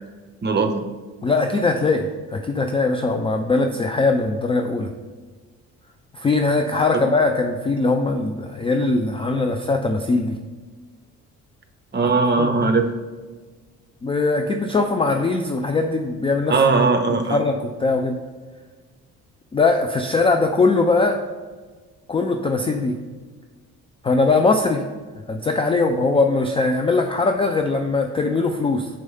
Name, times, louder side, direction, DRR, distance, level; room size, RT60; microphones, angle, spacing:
voice 1, 0.4-0.8 11.9-12.9 16.5-17.4, right 4 dB, 25° right, 6 dB, 0.8 m, -19 dB
voice 2, 1.2-2.0 2.3-4.9 6.1-10.4 12.4-12.5 14.0-16.6 17.3-18.2 19.5-21.2 22.1-23.0 24.0-24.8 25.3-28.9, left 3 dB, 15° left, 4 dB, 0.3 m, -20 dB
5.8 x 4.7 x 5.3 m, 1.4 s
figure-of-eight pair, 45°, 43 cm